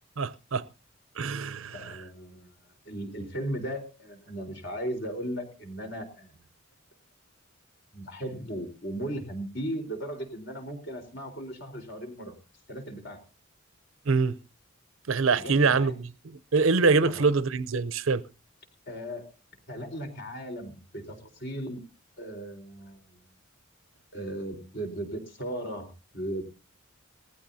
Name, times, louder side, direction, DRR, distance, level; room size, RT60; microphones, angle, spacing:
voice 1, 0.2-0.7 1.2-1.8 14.1-14.4 15.1-15.9 16.5-18.3, right 4 dB, 70° right, 0.7 m, -24 dB
voice 2, 1.7-6.5 7.9-12.4 12.7-13.2 15.4-16.0 17.0-17.3 18.9-19.3 19.7-21.8 22.2-23.2 24.1-26.4, right 1 dB, 55° left, 4.1 m, -37 dB
19.5 x 15.0 x 2.7 m
head